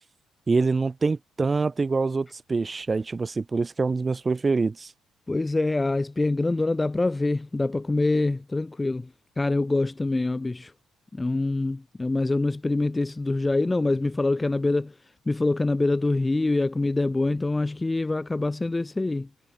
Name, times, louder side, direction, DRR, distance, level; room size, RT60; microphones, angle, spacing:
voice 1, 0.5-4.9, right 4 dB, 25° right, 3.5 m, -25 dB
voice 2, 5.3-10.7 11.1-15.0 15.3-19.3, left 2 dB, 15° left, 0.9 m, -25 dB
cardioid pair, 100°, 0 cm